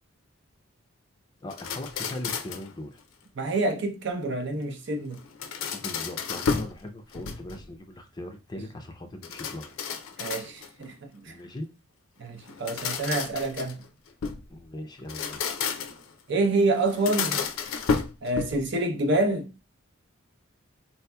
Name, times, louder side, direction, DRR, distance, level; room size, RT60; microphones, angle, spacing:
voice 1, 1.4-3.0 5.7-9.8 11.3-11.7 14.5-15.4, left 1 dB, 20° left, 0.4 m, -39 dB
sound 1, 1.5-2.7 5.1-6.8 7.1-7.7 9.2-10.8 12.4-14.5 15.0-16.1 16.9-18.7, left 5 dB, 80° left, 0.5 m, -32 dB
voice 2, 3.4-5.2 10.2-11.4 12.2-13.8 16.3-17.4 18.2-19.5, right 2 dB, 55° right, 0.6 m, -27 dB
4.0 x 2.8 x 2.2 m
head